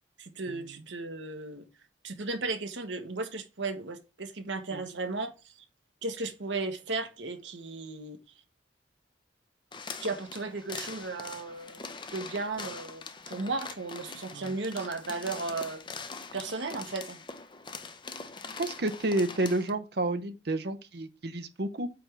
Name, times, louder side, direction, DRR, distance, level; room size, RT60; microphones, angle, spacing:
voice 1, 0.2-1.6 2.0-5.5 6.0-8.2 10.0-15.8 16.3-17.2, right 3 dB, 80° right, 1.4 m, -35 dB
sound 1, 9.7-19.7, left 4 dB, 25° left, 0.7 m, -43 dB
voice 2, 18.6-21.9, right 2 dB, 60° right, 0.8 m, -30 dB
8.5 x 3.4 x 6.0 m
head